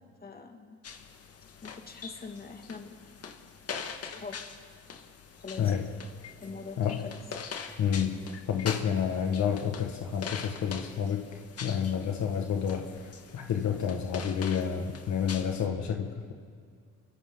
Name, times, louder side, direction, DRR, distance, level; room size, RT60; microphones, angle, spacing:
voice 1, 0.2-0.8 1.6-3.0 4.0-4.4 5.4-5.7 6.4-7.2, left 4 dB, 30° left, 3 dB, 2.4 m, -43 dB
sound 1, 0.8-15.7, left 6 dB, 50° left, 1.8 m, -43 dB
voice 2, 6.8-7.1 7.8-11.2 11.6-16.3, left 7 dB, 70° left, 3 dB, 1.8 m, -29 dB
29.0 x 23.5 x 4.0 m, 2.2 s
cardioid pair, 90°, 30 cm